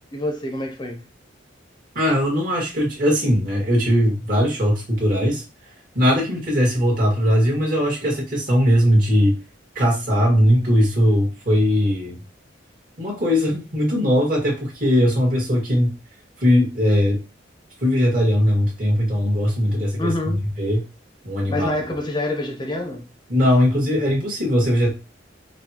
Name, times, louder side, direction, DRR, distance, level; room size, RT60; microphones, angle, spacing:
voice 1, 0.1-1.0 20.0-20.4 21.5-23.1, left 1 dB, 25° left, 0.7 m, -26 dB
voice 2, 2.0-5.4 6.0-9.4 9.8-12.2 13.0-15.9 16.4-17.2 17.8-20.8 21.2-21.7 23.3-24.9, equal, 50° right, 1.8 m, -19 dB
5.8 x 2.3 x 2.9 m
head